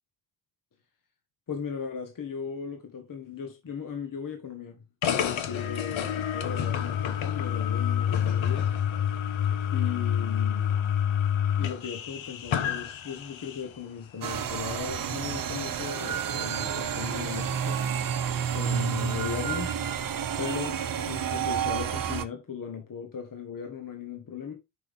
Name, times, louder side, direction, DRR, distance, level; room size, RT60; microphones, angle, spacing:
voice 1, 1.5-8.7 9.7-10.8 11.6-18.1 18.5-19.7 20.4-20.8 21.1-24.5, left 7 dB, 40° left, 1.5 m, -37 dB
sound 1, 5.0-13.8, left 9 dB, 65° left, 1.2 m, -28 dB
sound 2, 14.2-22.2, right 8 dB, 40° right, 0.9 m, -30 dB
6.0 x 5.4 x 3.6 m
cardioid pair, 85°, 49 cm